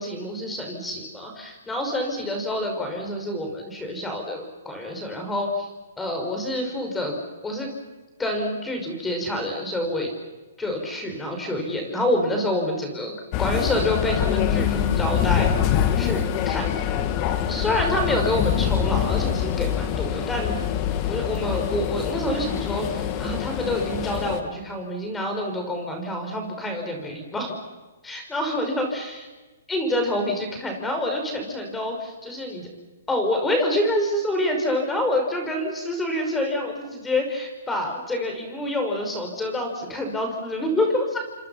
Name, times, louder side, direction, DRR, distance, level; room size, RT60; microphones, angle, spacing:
voice 1, 0.0-5.7 6.0-7.2 7.4-7.7 8.2-10.1 10.6-15.5 16.0-16.9 17.5-20.6 21.1-27.6 28.0-29.2 29.7-32.7 33.1-41.2, left 1 dB, 10° left, 3 dB, 6.0 m, -27 dB
sound 1, 13.3-24.4, left 9 dB, 35° left, 2.4 m, -25 dB
30.0 x 26.0 x 5.9 m, 1.2 s
hypercardioid pair, 140°, 0 cm